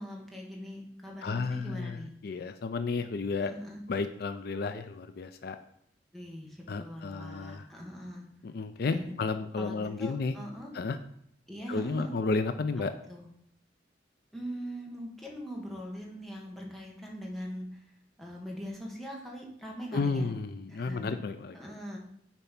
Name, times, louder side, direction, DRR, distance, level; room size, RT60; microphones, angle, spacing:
voice 1, 0.0-2.1 3.4-3.8 6.1-8.2 8.9-9.2 9.6-10.7 11.5-12.2 13.1-13.3 14.3-17.7 18.2-20.3 20.7-21.1 21.5-22.0, equal, ahead, -2 dB, 1.5 m, -41 dB
voice 2, 1.2-3.5 3.9-5.6 6.7-7.7 8.4-10.3 10.7-11.0 11.7-12.9 19.9-21.5, left 4 dB, 60° left, 10 dB, 0.4 m, -32 dB
7.0 x 4.4 x 5.8 m, 0.71 s
head